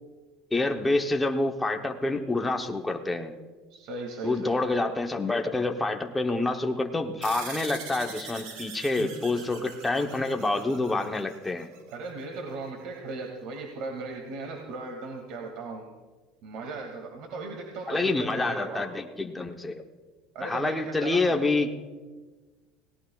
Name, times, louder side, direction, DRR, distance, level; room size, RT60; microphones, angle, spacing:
voice 1, 0.5-3.3 4.2-11.7 17.9-19.8 20.4-21.7, left 2 dB, 10° left, 3 dB, 0.9 m, -27 dB
voice 2, 3.7-4.7 9.0-9.1 9.5-9.6 11.9-15.8 16.4-18.9 20.3-21.4, right 3 dB, 60° right, 1 dB, 2.2 m, -37 dB
sound 1, 7.2-12.1, right 5 dB, 80° right, 6.8 m, -42 dB
29.0 x 18.0 x 2.4 m, 1.3 s
cardioid pair, 160°, 0 cm